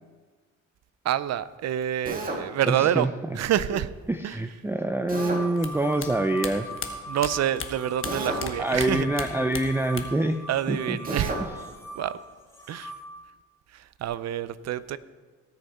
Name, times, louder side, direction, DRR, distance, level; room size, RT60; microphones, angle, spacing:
voice 1, 1.0-3.1 3.3-3.9 4.2-4.4 7.1-9.1 10.5-11.3 11.9-12.2 12.7-12.9 13.7-15.0, right 11 dB, 60° right, 16 dB, 0.6 m, -27 dB
Drill, 2.0-2.4 5.1-5.4 8.0-8.5 11.0-11.4, right 1 dB, 30° right, 2.0 m, -31 dB
voice 2, 2.7-3.1 4.1-6.7 8.6-10.4 10.7-11.0, right 2 dB, 10° right, 7 dB, 0.5 m, -26 dB
sound 1, 5.2-13.1, equal, 10° left, 3.5 m, -40 dB
sound 2, 5.6-8.5 8.8-10.3 10.5-11.3, left 6 dB, 45° left, 1.3 m, -36 dB
18.5 x 6.6 x 4.3 m, 1.4 s
cardioid pair, 90°, 30 cm